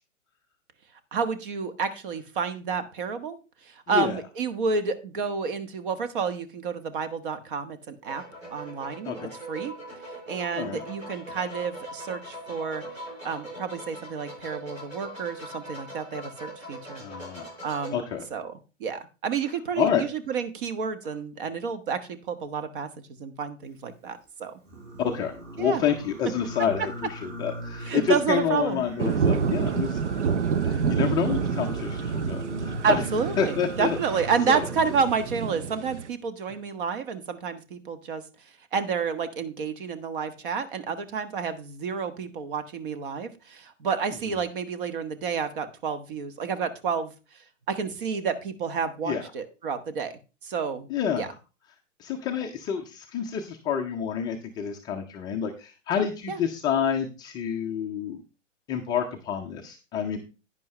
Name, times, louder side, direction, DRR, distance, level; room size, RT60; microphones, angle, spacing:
voice 1, 1.1-3.4 3.6-8.2 8.5-9.2 9.5-9.7 10.3-12.8 13.2-17.0 17.6-18.0 18.3-18.5 18.8-24.6 25.6-25.8 27.8-28.8 32.8-38.2 38.7-47.1 47.7-50.9 51.1-51.3 56.3-56.4, right 6 dB, 45° right, 11 dB, 1.3 m, -30 dB
voice 2, 3.9-4.2 9.0-9.3 10.6-10.8 17.0-17.5 17.9-18.3 19.8-20.0 25.0-25.3 25.6-30.0 30.6-33.0 33.4-34.0 34.5-34.7 44.3-44.4 49.0-49.2 50.9-51.3 52.0-58.2 58.7-60.2, left 8 dB, 10° left, 1 dB, 0.5 m, -28 dB
sound 1, 8.0-17.9, right 1 dB, 90° right, 6.1 m, -41 dB
Singing, 24.6-35.4, equal, 25° right, 3.3 m, -40 dB
sound 2, 29.0-36.1, right 6 dB, 65° right, 0.8 m, -28 dB
10.5 x 9.7 x 3.2 m, 0.31 s
figure-of-eight pair, 115°, 38 cm